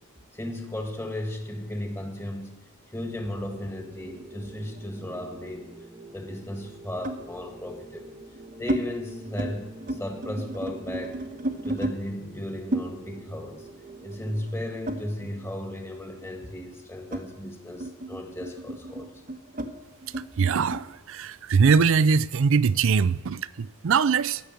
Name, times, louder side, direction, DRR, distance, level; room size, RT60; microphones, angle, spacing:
voice 1, 0.3-2.5 2.9-5.7 6.1-8.2 8.6-11.2 11.6-13.7 14.0-19.1, left 1 dB, 10° left, 1.7 m, -35 dB
sound 1, 3.1-14.4, right 2 dB, 20° right, 1.3 m, -46 dB
sound 2, 4.2-5.8 7.0-7.3 8.0-8.8 9.2-9.5 9.8-12.0 12.7-15.6 15.9-20.9, right 1 dB, 40° right, 1.0 m, -34 dB
voice 2, 20.4-24.4, right 5 dB, 65° right, 0.4 m, -22 dB
16.0 x 6.7 x 9.0 m
head